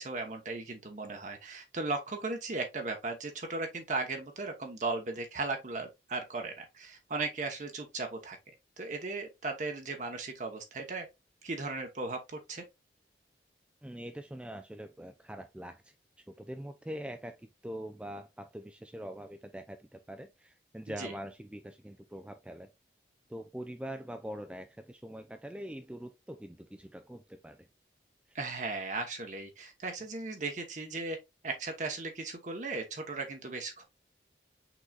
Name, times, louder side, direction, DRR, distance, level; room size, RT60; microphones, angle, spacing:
voice 1, 0.0-8.4 8.8-11.1 11.4-12.6 20.9-21.1 28.3-31.2 31.4-33.8, right 3 dB, 45° right, 0.9 m, -37 dB
voice 2, 13.8-15.9 16.3-22.7 23.3-27.6, equal, 5° right, 0.3 m, -43 dB
6.0 x 3.8 x 2.3 m
head